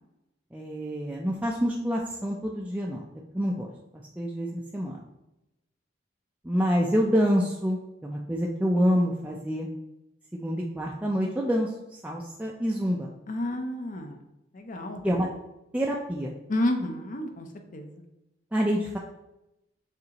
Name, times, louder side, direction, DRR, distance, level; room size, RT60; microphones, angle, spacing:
voice 1, 0.5-3.1 3.3-3.7 4.2-5.0 6.4-9.7 10.3-11.7 12.0-13.1 15.0-15.3 15.7-16.4 18.5-19.0, equal, 10° right, -2 dB, 0.3 m, -27 dB
voice 2, 13.3-14.2 14.5-15.0 16.5-17.5 17.7-18.0, left 1 dB, 45° left, 5 dB, 0.6 m, -30 dB
6.6 x 2.5 x 2.9 m, 0.91 s
head